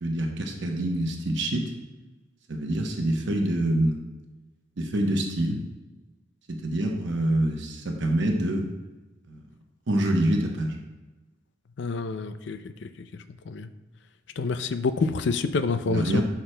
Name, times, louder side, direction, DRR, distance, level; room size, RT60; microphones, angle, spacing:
voice 1, 0.0-1.7 2.5-4.0 4.8-5.6 6.5-8.7 9.3-9.4 9.9-10.8 15.9-16.2, right 1 dB, 60° right, 2 dB, 0.9 m, -26 dB
voice 2, 11.8-13.7 14.4-16.2, left 4 dB, 60° left, 10 dB, 0.4 m, -28 dB
11.0 x 5.8 x 2.2 m, 1.2 s
head